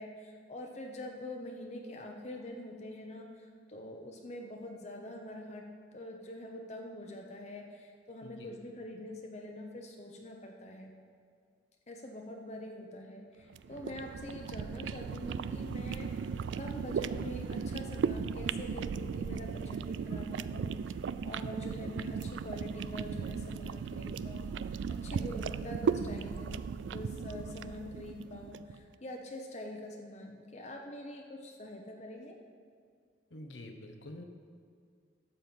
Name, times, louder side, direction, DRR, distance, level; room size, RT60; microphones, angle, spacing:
voice 1, 0.0-5.6 5.9-10.9 11.9-16.3 16.6-20.8 21.2-32.4, left 1 dB, 40° left, 2 dB, 0.9 m, -45 dB
voice 2, 8.2-8.5 33.3-34.2, left 1 dB, 85° left, 5 dB, 1.1 m, -47 dB
sound 1, 13.5-28.7, right 6 dB, 80° right, 0.3 m, -36 dB
12.5 x 4.5 x 7.8 m, 2.2 s
head